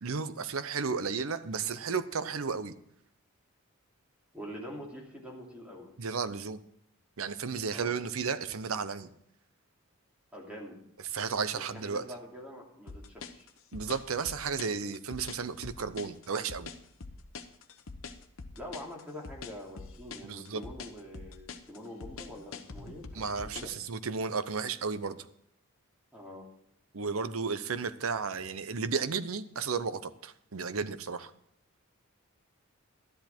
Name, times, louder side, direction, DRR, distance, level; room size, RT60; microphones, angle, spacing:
voice 1, 0.0-2.7 6.0-6.6 7.2-9.1 11.1-12.0 13.7-16.7 20.2-20.6 23.1-25.2 26.9-31.3, right 5 dB, 70° right, 13 dB, 0.7 m, -33 dB
voice 2, 4.3-5.9 7.7-8.0 10.3-10.8 11.5-13.5 18.6-23.7 26.1-26.5, equal, 5° right, -3 dB, 2.8 m, -45 dB
sound 1, 12.9-23.8, left 4 dB, 65° left, 0.9 m, -44 dB
12.5 x 10.5 x 4.4 m, 0.72 s
head